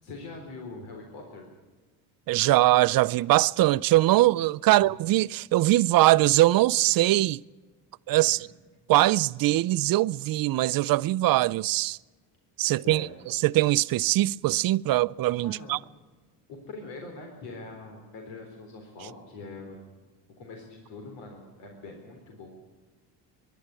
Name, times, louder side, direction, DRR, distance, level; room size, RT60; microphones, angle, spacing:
voice 1, 0.0-1.4 4.6-4.9 8.2-8.5 12.7-13.1 15.4-15.7 16.5-19.8 20.4-22.5, left 3 dB, 90° left, 3.9 m, -43 dB
voice 2, 2.3-7.4 8.1-8.5 8.9-12.0 12.6-15.8, right 16 dB, 55° right, 0.6 m, -22 dB
23.5 x 11.5 x 9.6 m
cardioid pair, 120°, 42 cm